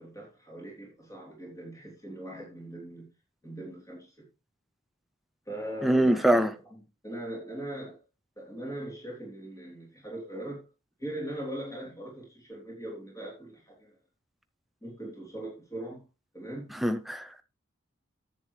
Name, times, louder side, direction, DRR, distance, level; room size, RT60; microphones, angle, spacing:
voice 1, 0.0-3.1 3.4-4.3 5.4-8.0 8.4-10.7 11.0-14.0 14.8-16.0 16.3-16.7, right 1 dB, 15° left, 3.3 m, -40 dB
voice 2, 5.8-6.5 16.8-17.4, right 1 dB, ahead, 0.5 m, -23 dB
10.5 x 8.2 x 3.2 m
head